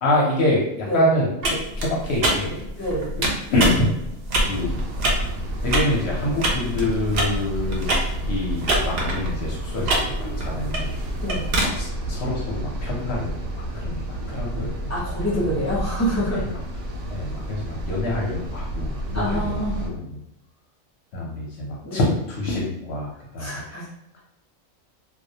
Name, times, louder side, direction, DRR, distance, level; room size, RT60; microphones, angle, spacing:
voice 1, 0.0-2.9 3.5-4.0 4.5-4.7 5.6-7.9 8.3-10.1 10.4-10.9 11.7-13.3 13.7-14.9 16.3-16.6 17.1-20.2 21.1-23.8, left 1 dB, 60° left, -3 dB, 0.7 m, -26 dB
sound 1, 1.4-11.7, right 1 dB, 60° right, 0.6 m, -26 dB
voice 2, 2.8-3.1 11.2-11.5 14.9-16.4 19.1-19.9 21.8-22.1 23.4-23.9, equal, 20° left, -7 dB, 0.5 m, -26 dB
sound 2, 4.4-19.9, right 1 dB, 90° right, 1.0 m, -31 dB
2.3 x 2.0 x 2.6 m, 0.83 s
omnidirectional pair, 1.4 m